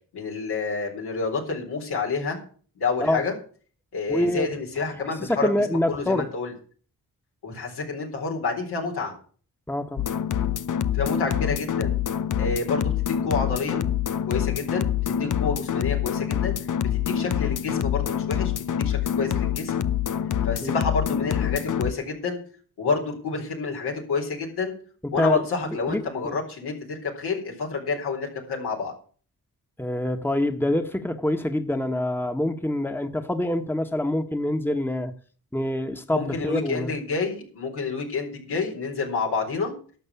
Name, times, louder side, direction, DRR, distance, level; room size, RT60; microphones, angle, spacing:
voice 1, 0.1-2.4 2.8-3.3 3.9-6.5 7.4-9.1 10.9-12.0 12.4-13.9 14.3-16.6 16.9-19.7 20.4-22.4 22.8-24.7 25.1-28.9 36.1-39.7, left 4 dB, 80° left, 4.2 m, -29 dB
voice 2, 4.1-4.5 5.0-6.3 9.7-10.1 20.6-20.8 25.2-26.3 29.8-35.1 35.5-36.9, left 1 dB, 5° left, 1.6 m, -26 dB
sound 1, 10.0-21.9, left 9 dB, 50° left, 0.8 m, -26 dB
12.0 x 6.5 x 8.5 m
supercardioid pair, 40°, 39 cm